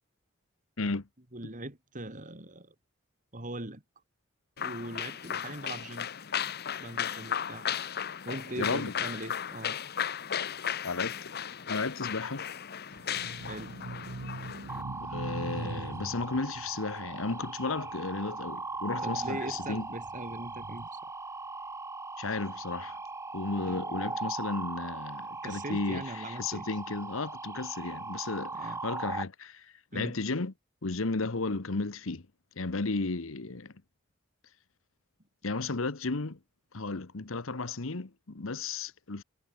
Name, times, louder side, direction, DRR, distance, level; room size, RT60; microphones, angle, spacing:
voice 1, 0.8-1.1 8.6-8.9 10.8-11.3 11.7-12.5 15.0-19.9 22.2-23.0 23.3-30.5 30.8-32.3 32.6-33.7 35.4-36.4 36.7-39.2, left 3 dB, 70° left, 1.1 m, -34 dB
voice 2, 1.3-2.8 3.3-3.8 4.6-6.1 6.8-7.7 8.2-9.8 13.4-13.8 19.0-21.0 23.6-23.8 25.4-26.7 28.5-28.8 29.9-30.2, right 1 dB, 40° right, 3.6 m, -40 dB
sound 1, 4.6-14.8, left 8 dB, 50° left, 1.0 m, -35 dB
sound 2, 12.9-18.5 19.0-20.9, right 2 dB, 80° right, 1.0 m, -42 dB
sound 3, 14.7-29.2, right 3 dB, 15° right, 0.6 m, -39 dB
head